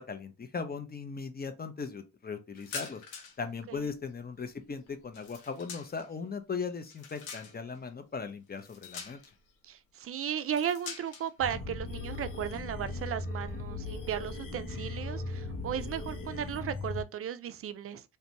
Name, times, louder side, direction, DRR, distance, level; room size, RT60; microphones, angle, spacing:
voice 1, 0.0-3.0 3.4-9.2, left 5 dB, 25° left, 0.6 m, -38 dB
sound 1, 2.6-3.5 3.7-6.1 6.6-7.8 8.5-9.5 10.3-11.3, left 5 dB, 85° left, 0.7 m, -45 dB
voice 2, 9.6-18.0, right 9 dB, 40° right, 0.4 m, -35 dB
sound 2, 11.4-17.0, left 3 dB, 60° left, 0.9 m, -38 dB
2.4 x 2.2 x 2.8 m
hypercardioid pair, 45°, 37 cm